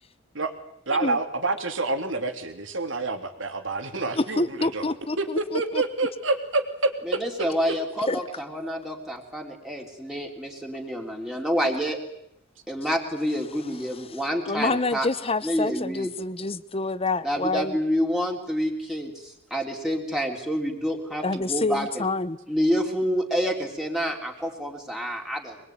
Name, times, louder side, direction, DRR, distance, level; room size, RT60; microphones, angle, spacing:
voice 1, 0.9-4.8 5.2-7.2, right 3 dB, 75° right, 6 dB, 3.2 m, -27 dB
voice 2, 4.1-5.8 8.1-8.2 14.5-17.8 21.2-22.4, left 3 dB, 30° left, 16 dB, 0.9 m, -27 dB
voice 3, 7.0-12.0 12.7-15.1 15.4-16.1 17.2-22.1 22.5-25.6, equal, 5° right, 1 dB, 3.3 m, -28 dB
24.5 x 21.5 x 9.4 m, 0.78 s
head